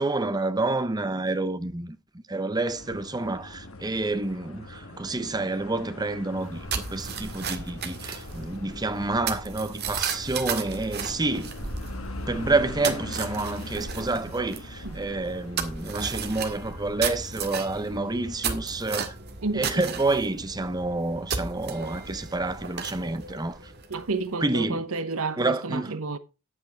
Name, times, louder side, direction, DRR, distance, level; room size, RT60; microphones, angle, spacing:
voice 1, 0.0-2.0 2.3-11.7 12.3-19.2 19.5-23.7 24.4-24.9 25.4-26.0, right 2 dB, 20° right, 0.8 m, -28 dB
sound 1, 2.6-19.0, left 2 dB, 65° left, 1.9 m, -42 dB
sound 2, 6.3-24.3, right 5 dB, 45° right, 1.9 m, -35 dB
voice 2, 19.4-19.9 23.9-26.2, right 3 dB, 65° right, 0.9 m, -31 dB
11.0 x 8.7 x 4.5 m
head